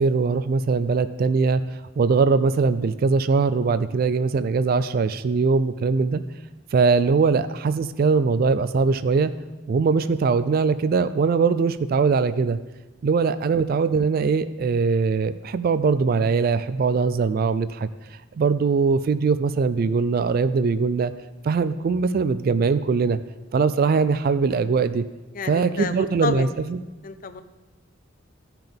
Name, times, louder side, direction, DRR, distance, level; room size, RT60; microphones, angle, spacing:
voice 1, 0.0-6.2 6.7-9.3 9.7-12.6 13.0-17.9 18.4-21.1 21.4-23.2 23.5-25.0 25.4-26.8, right 4 dB, 50° right, 13 dB, 0.3 m, -21 dB
voice 2, 25.3-26.5 27.0-27.4, left 5 dB, 45° left, 9 dB, 0.6 m, -30 dB
15.5 x 5.7 x 3.5 m, 1.1 s
head